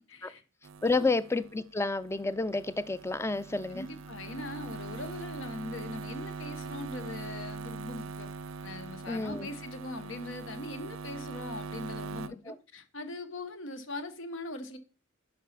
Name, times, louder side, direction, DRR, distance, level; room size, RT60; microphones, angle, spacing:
voice 1, 0.1-0.4 0.8-1.1 3.7-8.3 8.6-14.8, left 2 dB, 70° left, 1.0 m, -41 dB
sound 1, 0.6-12.3, right 4 dB, 85° right, 0.5 m, -42 dB
voice 2, 0.8-3.9 9.1-9.5 12.5-12.6, left 3 dB, 15° left, 0.4 m, -30 dB
6.1 x 5.4 x 4.0 m
head